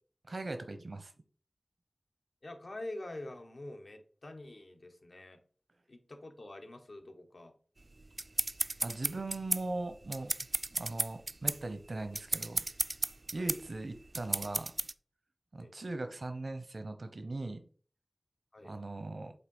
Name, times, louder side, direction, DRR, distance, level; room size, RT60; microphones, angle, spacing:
voice 1, 0.3-1.1 8.8-10.3 10.8-12.6 13.3-14.7 15.5-17.6 18.6-19.3, right 2 dB, 80° right, 8 dB, 0.8 m, -39 dB
voice 2, 2.4-5.4 5.9-7.5 13.3-13.6 15.6-15.7 18.5-18.7, left 1 dB, 80° left, 4 dB, 1.1 m, -46 dB
sound 1, 7.8-14.9, right 2 dB, 55° right, 0.3 m, -34 dB
8.1 x 2.8 x 5.4 m, 0.42 s
wide cardioid pair, 60°, 0 cm